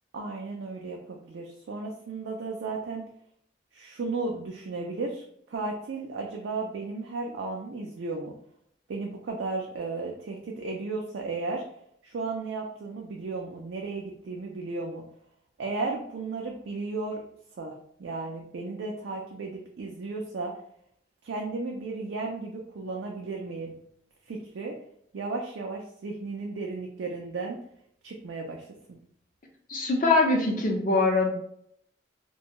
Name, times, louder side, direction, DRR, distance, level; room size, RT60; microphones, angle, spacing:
voice 1, 0.1-3.0 3.7-5.2 5.5-8.3 8.9-11.6 12.0-15.0 15.6-17.2 17.6-17.7 18.0-20.5 21.2-23.8 24.3-24.7 25.1-27.6 28.0-29.0, right 3 dB, 75° right, 0 dB, 0.4 m, -34 dB
voice 2, 29.7-31.3, left 3 dB, 45° left, 0 dB, 0.6 m, -23 dB
2.5 x 2.2 x 2.9 m, 0.69 s
head